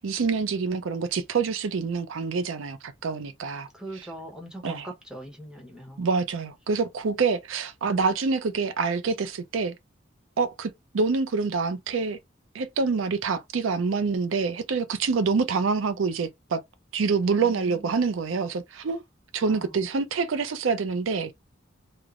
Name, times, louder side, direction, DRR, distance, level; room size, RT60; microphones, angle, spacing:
voice 1, 0.0-3.7 4.6-4.9 6.0-9.8 10.4-12.2 12.5-16.6 16.9-19.0 19.3-21.3, right 4 dB, 90° right, 0.5 m, -26 dB
voice 2, 3.7-6.1 17.4-18.0 19.5-19.9, right 1 dB, 5° right, 0.8 m, -42 dB
3.1 x 2.0 x 2.4 m
head